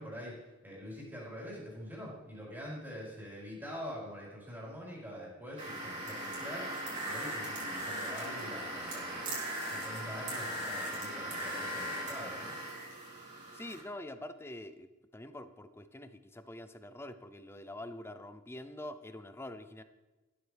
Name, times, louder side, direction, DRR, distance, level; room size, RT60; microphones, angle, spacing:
voice 1, 0.0-9.3 9.6-12.5, equal, 10° right, -6 dB, 4.5 m, -45 dB
sound 1, 5.6-13.8, right 1 dB, 35° right, 3.6 m, -39 dB
voice 2, 13.5-19.8, left 1 dB, 10° left, 10 dB, 0.6 m, -45 dB
15.5 x 12.5 x 3.5 m, 1.1 s
head